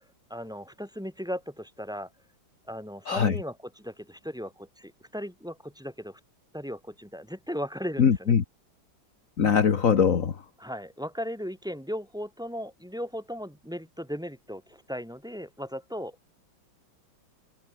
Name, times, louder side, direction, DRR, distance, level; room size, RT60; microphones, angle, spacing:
voice 1, 0.3-2.1 2.7-6.2 6.5-8.3 10.6-16.4, equal, ahead, 5.5 m, -37 dB
voice 2, 3.0-3.4 8.0-8.4 9.4-10.4, left 7 dB, 45° left, 1.7 m, -22 dB
omnidirectional pair, 2.1 m